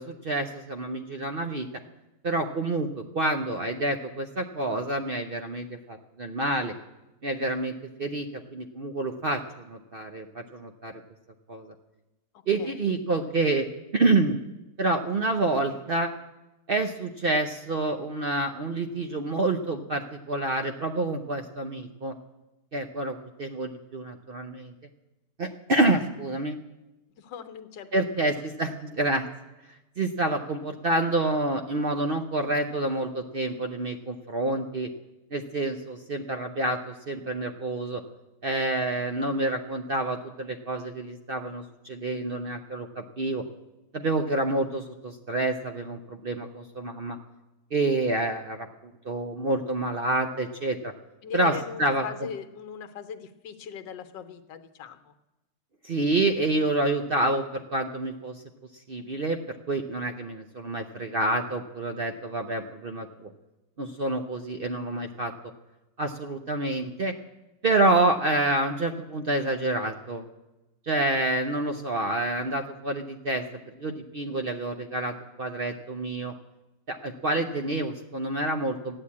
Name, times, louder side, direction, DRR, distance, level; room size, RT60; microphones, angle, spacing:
voice 1, 0.0-1.7 2.2-6.7 7.2-9.4 9.7-10.9 11.5-11.7 12.5-13.7 13.9-14.4 14.8-16.1 16.7-22.1 22.7-24.7 25.4-26.6 27.9-29.3 29.7-34.9 35.3-38.0 38.4-43.4 43.9-47.2 47.7-48.7 49.0-50.9 51.3-52.3 55.8-58.4 58.9-63.3 63.8-65.3 66.0-67.1 67.6-70.2 70.9-73.4 73.8-76.3 76.9-79.0, right 2 dB, 65° right, 5 dB, 0.5 m, -28 dB
voice 2, 12.6-12.9 27.2-28.3 51.2-55.1 71.7-71.8, left 7 dB, 80° left, 9 dB, 1.6 m, -40 dB
13.5 x 9.9 x 8.5 m, 1.0 s
omnidirectional pair, 1.9 m